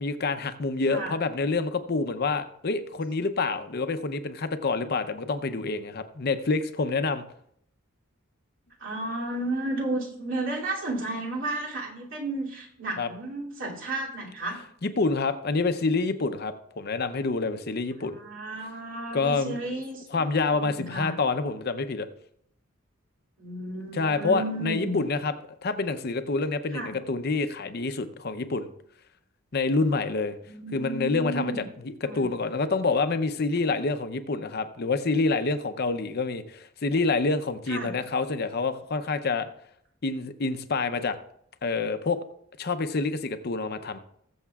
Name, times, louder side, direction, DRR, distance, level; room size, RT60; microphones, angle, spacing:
voice 1, 0.0-7.2 13.0-13.1 14.8-18.2 19.1-19.6 20.1-22.1 23.9-25.3 25.6-28.7 29.5-30.4 30.7-31.5 31.8-39.5 40.0-41.2 41.6-42.2 42.6-44.0, left 3 dB, 50° left, 10 dB, 0.6 m, -27 dB
voice 2, 8.8-14.6 18.0-21.2 23.4-25.0 26.7-26.9 30.4-31.7 32.0-32.3 37.7-37.9, right 2 dB, 65° right, -4 dB, 2.8 m, -33 dB
20.5 x 7.2 x 2.4 m, 0.70 s
head